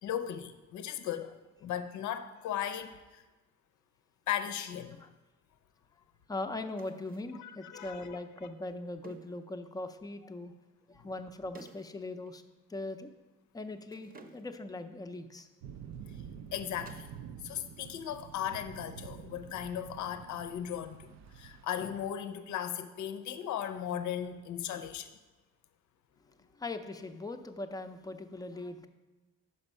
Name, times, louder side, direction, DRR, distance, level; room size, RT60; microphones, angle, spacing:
voice 1, 0.0-1.3 1.6-3.2 4.3-5.0 7.4-8.2 11.0-11.1 16.5-17.1 17.4-25.1, left 10 dB, 70° left, 9 dB, 0.6 m, -37 dB
sound 1, 2.7-2.9 4.4-4.7 6.8-7.4 9.0-9.5 11.5-12.0 12.3-12.4 13.9-14.7 16.8-17.3 17.6-18.1 20.4-20.9, right 3 dB, 30° right, 0.7 m, -55 dB
voice 2, 6.3-10.5 10.9-12.4 12.7-13.1 13.5-15.5 26.6-28.9, left 2 dB, 15° left, 7 dB, 0.5 m, -40 dB
sound 2, 15.6-21.7, right 8 dB, 65° right, 0.4 m, -48 dB
5.9 x 5.4 x 5.4 m, 1.2 s
cardioid pair, 90°, 30 cm